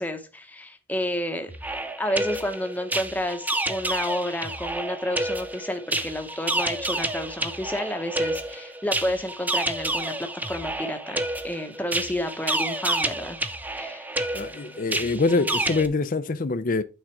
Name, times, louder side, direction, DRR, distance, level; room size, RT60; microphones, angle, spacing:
voice 1, 0.0-1.5 2.0-13.4 13.7-14.1, left 1 dB, 10° left, 0.9 m, -30 dB
sound 1, 1.5-15.9, right 2 dB, 10° right, 0.5 m, -29 dB
voice 2, 14.3-16.8, left 3 dB, 40° left, 0.5 m, -24 dB
8.9 x 3.9 x 4.6 m
head